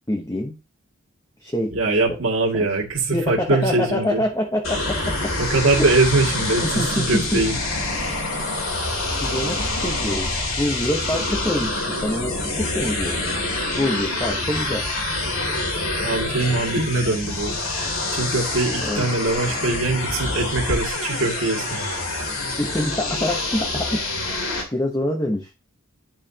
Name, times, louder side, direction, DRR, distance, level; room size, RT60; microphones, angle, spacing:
voice 1, 0.1-0.6 1.4-2.2 2.5-2.7 3.1-5.3 6.6-7.4 9.2-10.3 10.6-13.3 13.7-14.8 16.8-16.9 18.8-19.1 22.6-24.0 24.7-25.5, left 1 dB, 15° left, 2 dB, 1.0 m, -26 dB
voice 2, 1.7-4.2 5.5-7.5 16.0-17.6 18.1-21.8, right 3 dB, 70° right, 0 dB, 2.3 m, -22 dB
sound 1, 4.6-24.6, left 2 dB, 80° left, 2.9 m, -26 dB
11.0 x 5.9 x 2.9 m, 0.31 s
head